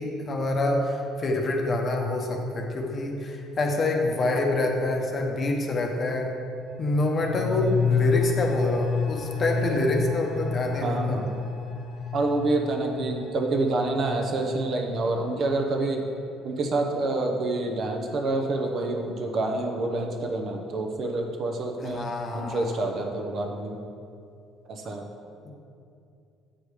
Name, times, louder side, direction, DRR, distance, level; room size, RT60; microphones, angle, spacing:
voice 1, 0.0-6.3 6.8-11.2 21.8-22.6 25.4-25.5, left 2 dB, 30° left, 1 dB, 0.9 m, -26 dB
sound 1, 6.6-16.0 16.3-16.4, left 6 dB, 80° left, 1.1 m, -31 dB
voice 2, 10.8-11.3 12.1-16.1 16.4-22.1 22.3-23.7 24.7-25.1, right 2 dB, 40° right, 2 dB, 0.8 m, -27 dB
7.7 x 5.0 x 4.9 m, 2.5 s
cardioid pair, 150°, 0 cm